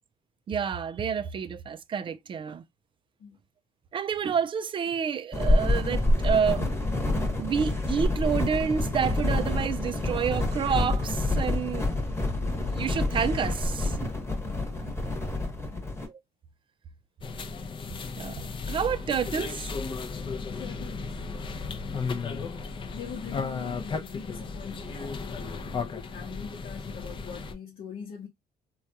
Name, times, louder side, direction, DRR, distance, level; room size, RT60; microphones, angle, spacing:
voice 1, 0.5-2.6 3.9-6.7 7.4-11.9 12.7-14.0 16.1-16.2 18.2-18.4 18.7-19.7, right 7 dB, 30° right, 0.4 m, -29 dB
sound 1, 5.3-16.1, left 2 dB, 15° left, 1.0 m, -27 dB
voice 2, 14.4-15.1 15.7-16.0 20.6-21.2 22.9-28.3, left 7 dB, 55° left, 0.9 m, -43 dB
sound 2, 17.2-27.5, left 4 dB, 30° left, 0.5 m, -35 dB
3.4 x 2.3 x 2.6 m
cardioid pair, 110°, 17 cm